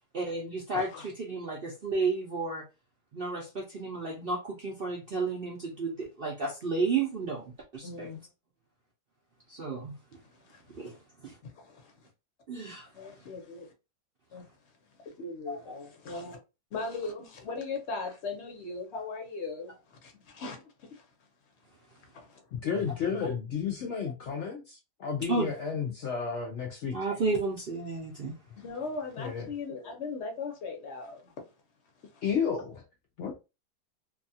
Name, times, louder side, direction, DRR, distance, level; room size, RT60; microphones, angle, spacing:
voice 1, 0.1-2.6 3.1-8.1 9.5-9.9 10.7-10.9 11.2-11.4 12.5-12.9 15.5-15.6 18.9-19.0 25.3-25.5 26.9-28.3, right 3 dB, 60° right, 0.6 m, -32 dB
voice 2, 0.7-1.1 7.8-8.2 10.5-11.0 11.4-12.1 12.9-13.7 14.3-14.5 15.0-16.4 16.7-21.1 22.1-22.4 28.6-31.3 32.0-32.2, left 4 dB, 50° left, 0.9 m, -39 dB
voice 3, 22.5-27.0 29.2-29.5 32.2-32.8 33.2-33.4, left 6 dB, 80° left, 0.6 m, -32 dB
2.7 x 2.3 x 2.6 m
omnidirectional pair, 1.7 m